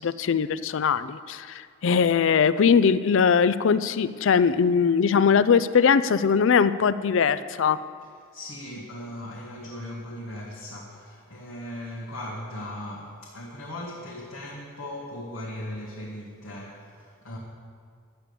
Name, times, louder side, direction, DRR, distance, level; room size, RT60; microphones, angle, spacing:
voice 1, 0.0-7.8, left 6 dB, 65° left, 15 dB, 0.4 m, -21 dB
voice 2, 8.3-17.4, left 1 dB, 85° left, -4 dB, 1.8 m, -38 dB
11.5 x 8.4 x 6.9 m, 2.2 s
head